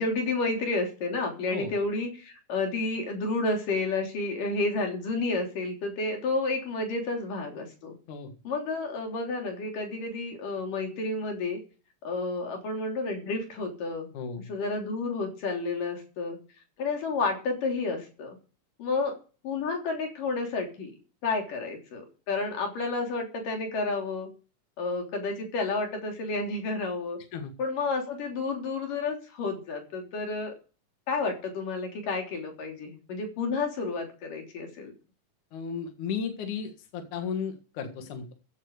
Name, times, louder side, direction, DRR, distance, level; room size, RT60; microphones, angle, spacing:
voice 1, 0.0-8.0 8.4-11.6 12.0-14.1 14.5-16.4 16.8-18.4 18.8-19.2 19.4-20.9 21.2-24.3 24.8-27.2 27.6-30.5 31.1-34.9, left 3 dB, 90° left, 3 dB, 5.0 m, -30 dB
voice 2, 14.1-14.5 27.3-27.5 35.5-38.3, left 6 dB, 70° left, 5 dB, 3.1 m, -34 dB
15.5 x 8.0 x 6.7 m, 0.36 s
omnidirectional pair, 3.7 m